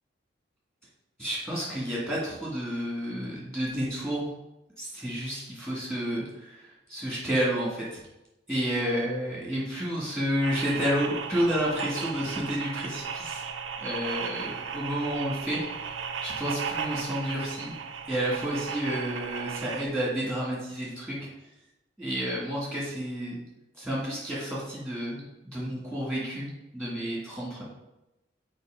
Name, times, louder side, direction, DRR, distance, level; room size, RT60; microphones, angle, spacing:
voice 1, 1.2-4.3 4.8-8.0 8.5-13.4 13.8-15.9 16.2-17.7 18.1-21.3 22.0-23.3 23.8-27.6, equal, 5° left, -7 dB, 2.1 m, -30 dB
sound 1, 10.4-19.9, right 6 dB, 85° right, 0.5 m, -36 dB
6.3 x 4.7 x 3.7 m, 0.95 s
head